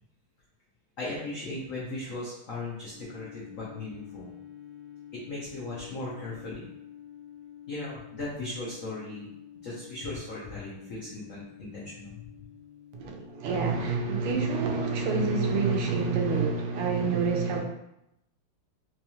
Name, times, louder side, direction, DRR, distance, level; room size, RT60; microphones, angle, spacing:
voice 1, 1.0-4.3 5.3-6.7 7.7-9.3 9.6-12.2, left 2 dB, 85° left, 0.7 m, -37 dB
sound 1, 2.9-13.5, left 10 dB, 65° left, 1.2 m, -48 dB
voice 2, 12.9-17.6, right 4 dB, 85° right, 1.5 m, -27 dB
4.4 x 2.3 x 2.8 m
omnidirectional pair, 2.4 m